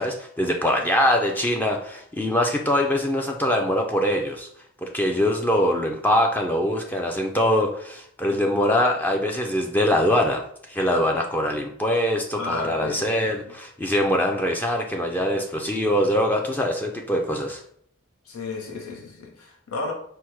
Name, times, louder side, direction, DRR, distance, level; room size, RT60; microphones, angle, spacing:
voice 1, 0.0-4.5 4.8-10.4 10.7-17.6, left 1 dB, 10° left, 0.3 m, -23 dB
voice 2, 12.4-13.3 18.3-19.9, left 3 dB, 85° left, 0.8 m, -33 dB
4.4 x 2.1 x 4.6 m
head